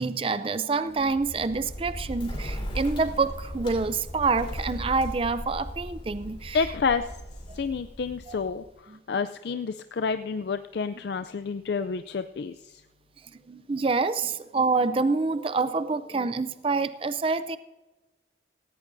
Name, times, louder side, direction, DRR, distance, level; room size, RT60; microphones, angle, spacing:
voice 1, 0.0-6.6 7.5-7.6 8.3-8.4 8.9-9.0 13.5-17.6, right 4 dB, 30° right, 13 dB, 0.4 m, -27 dB
Bird, 0.9-8.7, equal, 30° left, 3.5 m, -37 dB
voice 2, 6.5-7.1 7.5-12.8, left 5 dB, 60° left, 10 dB, 0.4 m, -29 dB
17.5 x 16.5 x 2.6 m, 1.1 s
head